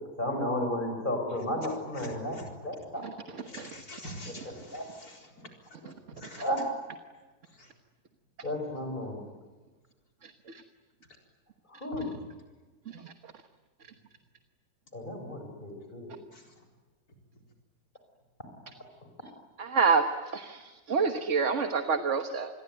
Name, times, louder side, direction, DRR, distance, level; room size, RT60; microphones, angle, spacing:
voice 1, 0.2-2.4 2.6-3.0 3.5-3.6 4.7-4.9 6.4-6.7 8.4-9.2 11.7-12.1 14.9-16.1, left 1 dB, 30° left, 5 dB, 6.3 m, -33 dB
voice 2, 1.9-2.5 3.5-5.5 5.8-6.5 7.5-7.7 16.3-16.5, equal, 65° left, 2 dB, 4.7 m, -45 dB
voice 3, 19.6-20.0 20.3-20.6 20.9-22.5, right 5 dB, 50° right, 7 dB, 1.6 m, -26 dB
28.0 x 21.5 x 9.3 m, 1.3 s
omnidirectional pair, 1.7 m